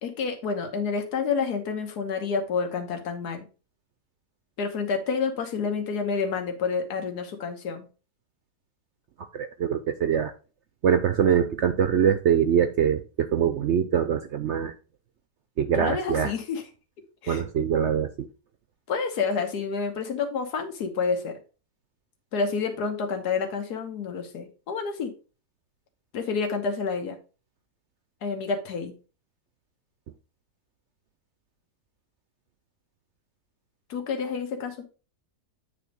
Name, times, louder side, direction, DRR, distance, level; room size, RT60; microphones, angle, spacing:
voice 1, 0.0-3.5 4.6-7.9 15.7-16.6 17.2-17.4 18.9-21.4 22.3-25.1 26.1-27.2 28.2-28.9 33.9-34.8, left 5 dB, 75° left, 5 dB, 1.7 m, -29 dB
voice 2, 9.3-10.3 10.8-14.7 15.6-16.3 17.3-18.3, right 8 dB, 65° right, 9 dB, 0.7 m, -23 dB
9.0 x 3.5 x 5.1 m, 0.35 s
omnidirectional pair, 1.7 m